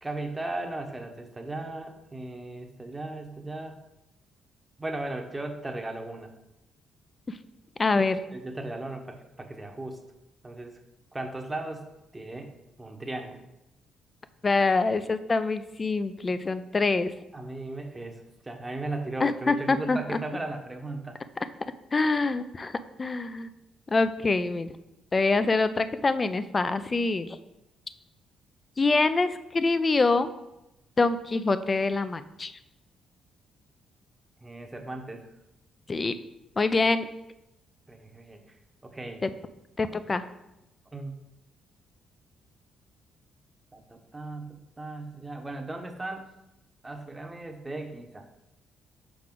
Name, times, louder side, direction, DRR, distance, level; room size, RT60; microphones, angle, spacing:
voice 1, 0.0-3.8 4.8-6.3 8.3-10.0 10.4-10.8 11.1-12.5 12.8-13.4 17.3-21.2 34.4-35.3 37.9-38.4 38.8-39.2 40.9-41.1 43.7-46.3 46.8-48.3, right 2 dB, 15° right, 4 dB, 0.9 m, -37 dB
voice 2, 7.8-8.2 14.4-17.1 19.2-20.2 21.9-23.5 23.9-24.7 25.1-27.4 28.8-30.3 31.0-32.5 35.9-36.1 36.6-37.1 39.2-39.3 39.8-40.2, left 3 dB, 30° left, 12 dB, 0.4 m, -25 dB
6.0 x 4.7 x 3.7 m, 0.91 s
cardioid pair, 90°, 0 cm